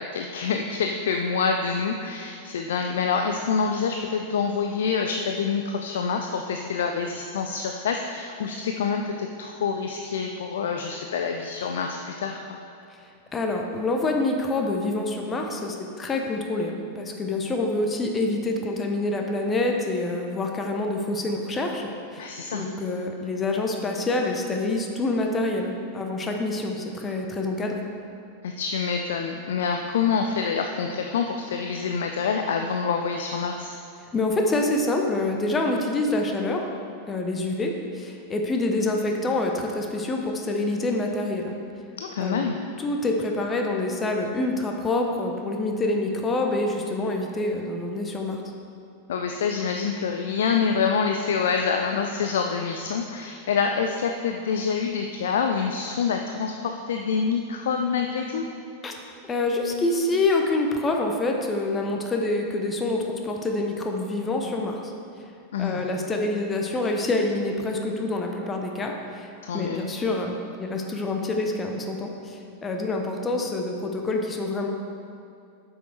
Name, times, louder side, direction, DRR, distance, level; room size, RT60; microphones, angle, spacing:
voice 1, 0.0-12.6 22.2-22.7 28.4-33.8 42.0-42.6 49.1-58.5 65.5-65.9 69.4-69.9, left 6 dB, 60° left, 4 dB, 0.4 m, -26 dB
voice 2, 13.3-27.8 34.1-36.7 37.1-41.6 42.2-42.5 42.8-48.4 58.8-58.9 59.3-64.9 65.6-74.7, left 2 dB, 20° left, 2 dB, 0.8 m, -26 dB
8.0 x 6.4 x 4.6 m, 2.6 s
figure-of-eight pair, 90°, 0 cm